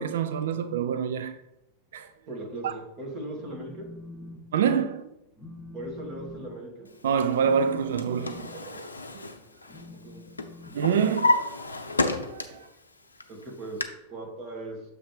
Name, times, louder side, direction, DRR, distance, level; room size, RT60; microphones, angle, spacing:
voice 1, 0.0-1.4 1.9-2.1 2.6-2.7 4.5-5.1 7.0-8.8 9.1-9.3 10.7-11.8 12.2-12.7, right 7 dB, 60° right, 0.3 m, -27 dB
voice 2, 2.3-3.9 5.7-6.9 10.0-10.2 13.3-14.9, right 1 dB, 35° right, 2.0 m, -38 dB
Telephone, 3.4-4.4 4.7-5.0 5.4-11.5, left 2 dB, 10° left, 2.1 m, -46 dB
Drawer open or close, 7.6-10.1 10.4-12.7 13.1-13.8, left 2 dB, 80° left, 0.6 m, -30 dB
7.1 x 3.3 x 4.8 m
figure-of-eight pair, 90°, 0 cm